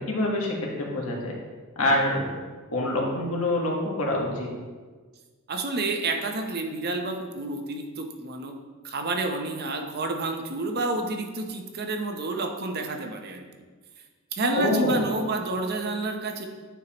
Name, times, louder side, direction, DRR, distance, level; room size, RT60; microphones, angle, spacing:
voice 1, 0.0-1.4 1.7-2.3 2.7-4.5 14.5-15.0, left 1 dB, 80° left, -2 dB, 1.4 m, -26 dB
voice 2, 5.5-8.5 8.8-13.5 14.3-16.5, right 2 dB, 45° right, 4 dB, 0.7 m, -29 dB
9.2 x 4.5 x 2.9 m, 1.4 s
head